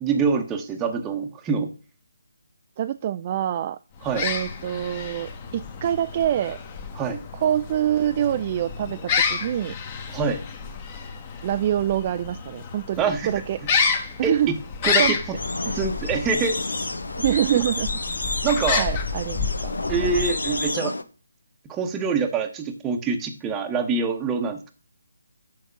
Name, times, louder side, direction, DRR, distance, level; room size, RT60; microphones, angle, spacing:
voice 1, 0.0-1.7 4.0-4.2 7.0-7.2 10.1-10.4 13.0-13.3 14.2-14.6 14.8-15.2 15.7-16.6 18.4-18.9 19.9-20.9 21.7-24.6, right 5 dB, 10° right, 4 dB, 0.9 m, -25 dB
voice 2, 2.8-3.8 4.2-6.6 7.3-9.8 11.4-13.6 14.2-14.5 15.0-15.2 15.6-15.8 17.2-17.9 18.8-19.7, right 11 dB, 30° right, 10 dB, 0.3 m, -25 dB
sound 1, 4.0-20.7, left 5 dB, 30° left, 1.2 m, -30 dB
sound 2, 15.3-21.0, left 2 dB, 75° left, 0.8 m, -30 dB
6.6 x 5.7 x 6.5 m, 0.35 s
figure-of-eight pair, 150°, 0 cm